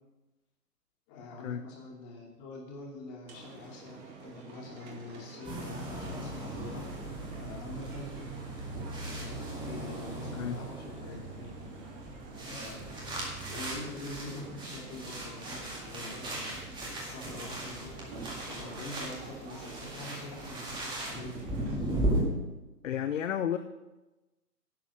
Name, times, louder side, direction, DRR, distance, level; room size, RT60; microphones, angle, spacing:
voice 1, 1.1-6.8 7.3-8.3 9.0-11.5 12.4-21.4, left 2 dB, 30° left, -1 dB, 3.0 m, -45 dB
sound 1, 3.3-21.8, right 4 dB, 30° right, 2.1 m, -48 dB
sound 2, 5.4-22.2, right 1 dB, 10° right, 2.0 m, -37 dB
voice 2, 22.8-23.6, left 9 dB, 55° left, 10 dB, 0.7 m, -31 dB
11.5 x 7.2 x 6.4 m, 1.1 s
figure-of-eight pair, 135°, 48 cm